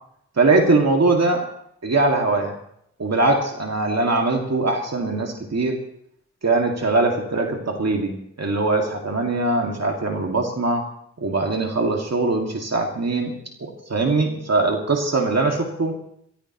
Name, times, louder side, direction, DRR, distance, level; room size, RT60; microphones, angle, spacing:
voice 1, 0.4-1.5 1.8-2.5 3.0-5.8 6.4-10.8 11.2-13.3 13.6-15.9, right 3 dB, 60° right, 1 dB, 2.1 m, -21 dB
23.5 x 15.5 x 3.0 m, 0.70 s
wide cardioid pair, 85°, 29 cm